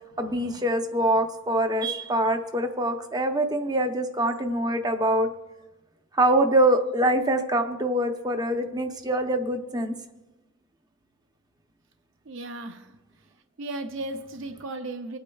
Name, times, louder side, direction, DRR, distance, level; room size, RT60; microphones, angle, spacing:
voice 1, 0.2-5.3 6.1-10.0, right 1 dB, 20° right, 0.7 m, -24 dB
voice 2, 12.2-13.3 13.6-15.2, right 2 dB, 60° right, 0.5 m, -36 dB
24.5 x 8.5 x 2.3 m
head